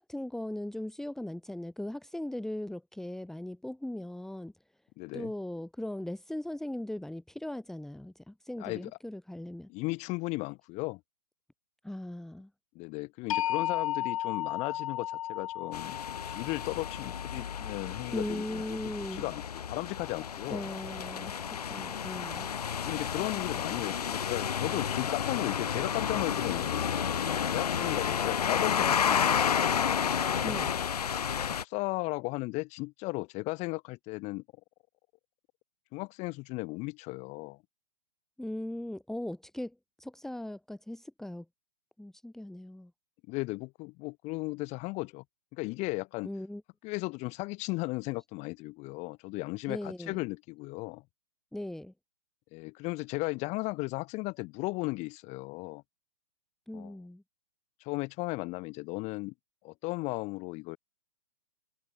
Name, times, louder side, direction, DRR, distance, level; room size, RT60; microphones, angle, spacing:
voice 1, 0.0-4.5 5.1-9.7 11.8-12.5 18.1-19.3 20.5-21.3 21.7-22.5 30.4-30.7 38.4-41.4 42.0-42.9 46.2-46.6 49.7-50.3 51.5-51.9 56.7-57.2, left 1 dB, ahead, 3.0 m, -38 dB
voice 2, 5.0-5.3 8.6-8.9 9.7-11.0 12.8-16.0 16.2-18.6 19.1-19.4 19.7-20.7 22.8-29.8 30.3-30.6 31.6-34.4 35.9-37.6 43.3-45.2 45.5-46.3 46.8-51.0 52.5-55.8 56.7-56.9 57.8-59.3 59.6-60.8, left 24 dB, 35° left, 7.1 m, -36 dB
sound 1, 13.3-19.3, left 12 dB, 55° left, 2.2 m, -35 dB
sound 2, 15.7-31.6, left 8 dB, 75° left, 1.1 m, -31 dB
hypercardioid pair, 120°, 20 cm